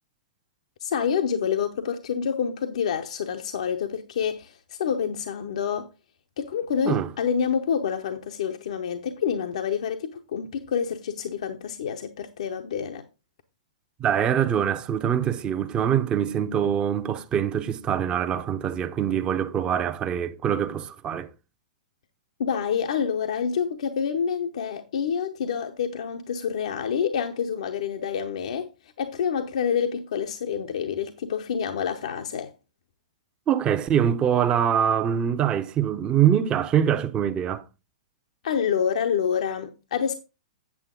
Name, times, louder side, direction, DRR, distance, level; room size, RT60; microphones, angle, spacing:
voice 1, 0.8-5.9 6.4-13.0 22.4-28.7 29.0-32.5 38.4-40.1, left 7 dB, 65° left, 0.8 m, -27 dB
voice 2, 14.0-21.3 33.5-37.6, right 9 dB, 25° right, 0.8 m, -24 dB
8.5 x 7.3 x 3.7 m
hypercardioid pair, 110°, 4 cm